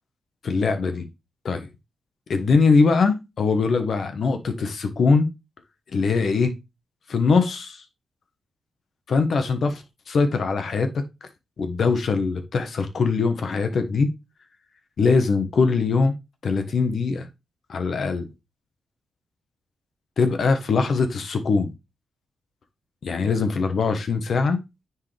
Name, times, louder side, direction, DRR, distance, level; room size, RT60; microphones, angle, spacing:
voice 1, 0.4-1.1 1.4-1.7 2.3-5.3 5.9-6.5 7.1-7.8 9.1-11.0 11.6-14.1 15.0-16.1 16.4-17.3 17.7-18.3 20.2-21.7 23.0-24.6, left 4 dB, 55° left, 1.3 m, -22 dB
9.5 x 4.8 x 3.4 m
wide cardioid pair, 125°, 0 cm